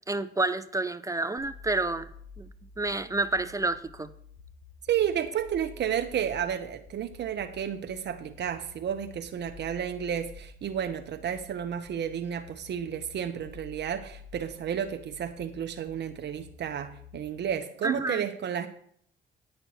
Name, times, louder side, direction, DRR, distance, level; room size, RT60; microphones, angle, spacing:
voice 1, 0.1-2.1 2.4-2.5 2.8-4.1 17.8-18.2, right 2 dB, 15° right, 12 dB, 0.5 m, -29 dB
sound 1, 1.4-17.4, left 5 dB, 85° left, 1.4 m, -50 dB
voice 2, 4.9-18.7, right 9 dB, 60° right, 7 dB, 0.8 m, -32 dB
10.5 x 4.6 x 7.8 m, 0.65 s
cardioid pair, 90°, 20 cm